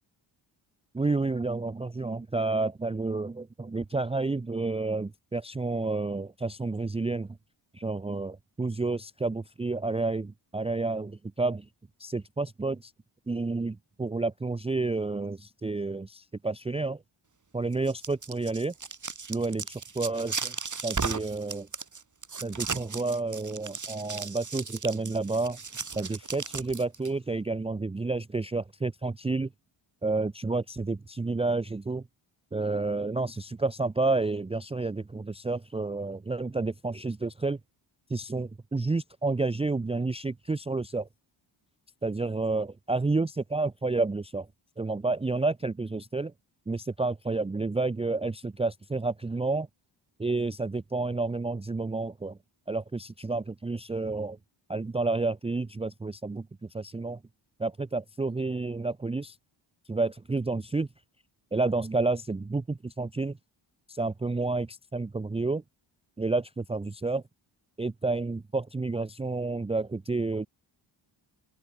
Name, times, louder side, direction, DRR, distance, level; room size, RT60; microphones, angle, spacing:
voice 1, 0.9-7.4 7.7-11.7 12.0-12.9 13.3-17.0 17.5-18.7 19.3-20.5 20.8-21.7 22.4-25.6 26.0-29.5 30.0-32.0 32.5-37.6 38.1-41.1 42.0-44.5 44.8-46.3 46.7-49.7 50.2-52.4 52.7-54.4 54.7-57.2 57.6-59.4 59.9-60.9 61.5-63.4 63.9-65.6 66.2-67.2 67.8-70.5, right 3 dB, 15° right, 0.5 m, -30 dB
sound 1, 17.7-27.1, right 5 dB, 35° right, 4.8 m, -36 dB
open air
wide cardioid pair, 105°, 49 cm